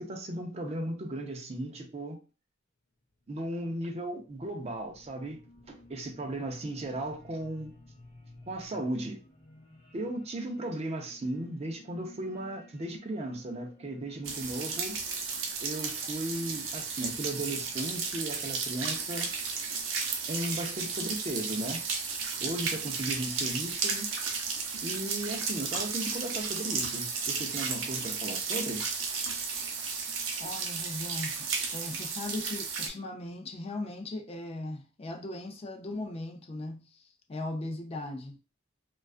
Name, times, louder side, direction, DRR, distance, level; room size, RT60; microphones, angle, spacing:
voice 1, 0.0-2.2 3.3-5.4 5.7-7.7 8.5-9.2 9.9-15.0 15.6-19.3 20.3-21.8 22.4-24.1 24.8-28.8, right 1 dB, 35° right, 0.5 m, -36 dB
sound 1, 3.1-21.5, left 2 dB, 45° left, 0.9 m, -57 dB
sound 2, 14.2-32.9, right 5 dB, 85° right, 0.5 m, -33 dB
voice 2, 30.4-38.3, left 2 dB, 30° left, 0.4 m, -38 dB
2.3 x 2.2 x 2.4 m
head